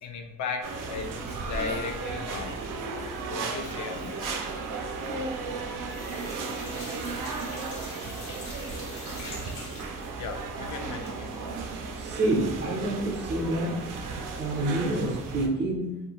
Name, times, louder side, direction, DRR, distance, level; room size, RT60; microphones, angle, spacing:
voice 1, 0.0-2.6 3.3-4.3 8.2-8.3 10.2-11.4, left 5 dB, 65° left, 5 dB, 0.5 m, -36 dB
sound 1, 0.6-15.5, right 4 dB, 90° right, 0.5 m, -35 dB
sound 2, 5.8-12.7 13.0-13.1 13.5-13.6, left 1 dB, 90° left, 1.1 m, -45 dB
voice 2, 12.0-13.8 14.3-16.0, right 1 dB, 35° right, 1 dB, 0.5 m, -28 dB
2.4 x 2.3 x 2.8 m, 1.0 s
wide cardioid pair, 135°, 31 cm